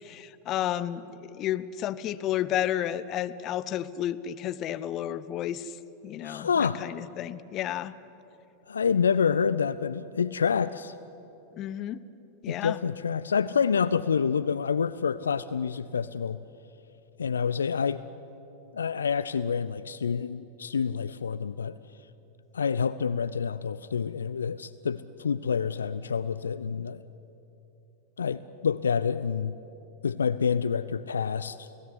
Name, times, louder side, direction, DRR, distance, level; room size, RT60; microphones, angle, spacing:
voice 1, 0.0-5.7 6.0-7.9 11.6-12.0 12.4-12.8, left 11 dB, 35° left, 14 dB, 0.9 m, -32 dB
voice 2, 6.2-6.8 8.7-10.9 12.5-16.4 17.2-18.0 18.7-21.8 22.5-27.0 28.2-29.6 30.0-31.8, left 6 dB, 70° left, 15 dB, 0.6 m, -27 dB
29.5 x 17.0 x 9.8 m, 2.9 s
figure-of-eight pair, 90°, 0 cm